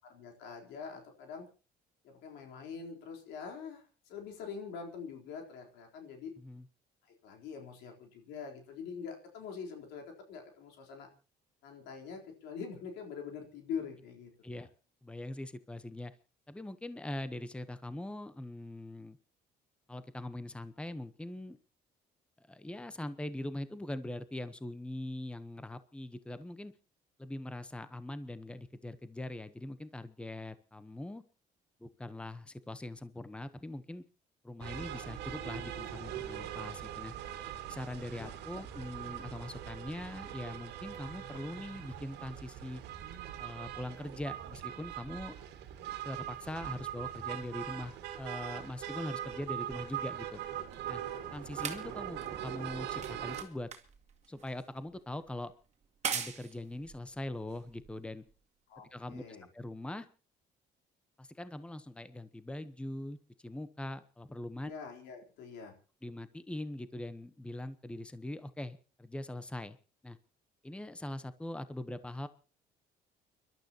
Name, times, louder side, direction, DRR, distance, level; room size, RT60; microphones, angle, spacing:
voice 1, 0.0-1.5 2.0-6.3 7.2-11.1 11.6-14.7 38.2-38.6 58.7-59.5 64.6-65.7, left 6 dB, 90° left, 2 dB, 3.9 m, -44 dB
voice 2, 15.0-16.1 16.5-19.2 19.9-21.6 22.4-26.7 27.2-31.2 31.8-34.0 34.4-37.1 37.7-42.8 43.4-45.3 46.0-50.4 50.9-51.0 51.3-53.7 54.3-55.5 56.1-58.2 58.9-60.1 61.2-63.2 63.4-64.7 66.0-69.8 70.0-70.2 70.6-72.3, left 1 dB, 5° left, 13 dB, 1.0 m, -42 dB
sound 1, 34.6-53.4, right 10 dB, 85° right, 2.1 m, -41 dB
sound 2, 49.7-58.3 59.2-59.3, right 7 dB, 40° right, 2.3 m, -43 dB
30.0 x 12.0 x 2.9 m, 0.35 s
cardioid pair, 110°, 17 cm